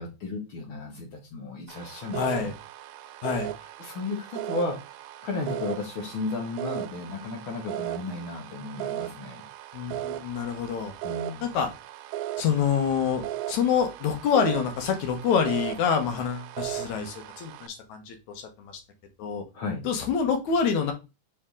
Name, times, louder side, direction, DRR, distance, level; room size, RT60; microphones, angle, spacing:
voice 1, 0.0-2.5 3.8-4.8 5.2-9.4 11.0-11.6 19.5-19.8, left 3 dB, 55° left, 2 dB, 1.8 m, -34 dB
sound 1, 1.7-17.7, right 14 dB, 85° right, 2.0 m, -37 dB
voice 2, 2.1-2.5 3.2-3.5 9.7-10.9 11.4-11.7 12.4-18.7 19.2-19.4 19.8-20.9, left 7 dB, 80° left, 5 dB, 2.5 m, -26 dB
5.2 x 5.0 x 3.7 m, 0.26 s
omnidirectional pair, 3.4 m